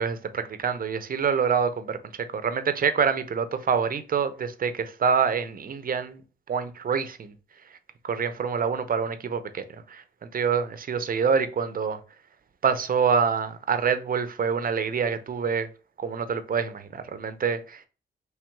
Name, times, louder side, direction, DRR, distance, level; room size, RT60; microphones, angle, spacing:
voice 1, 0.0-6.2 6.5-7.3 8.0-12.0 12.6-15.7 16.0-17.9, right 6 dB, 50° right, 0.6 m, -26 dB
4.6 x 3.3 x 2.2 m
cardioid pair, 90°, 19 cm